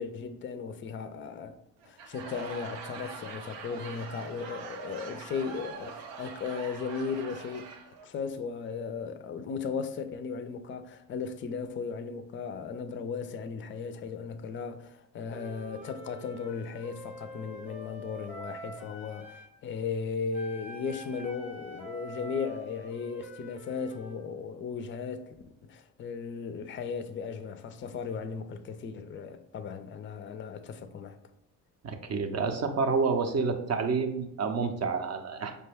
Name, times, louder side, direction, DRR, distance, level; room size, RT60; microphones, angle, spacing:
voice 1, 0.0-1.5 1.9-7.7 8.0-25.3 25.6-31.2, left 5 dB, 30° left, 0.4 m, -36 dB
Laughter / Crowd, 1.8-8.0, right 5 dB, 85° right, 0.6 m, -43 dB
Wind instrument woodwind instrument, 15.3-19.5 20.3-24.2, equal, 5° right, 0.8 m, -46 dB
voice 2, 31.8-35.6, right 4 dB, 35° right, 0.6 m, -29 dB
5.0 x 2.2 x 3.3 m
supercardioid pair, 80°, 43 cm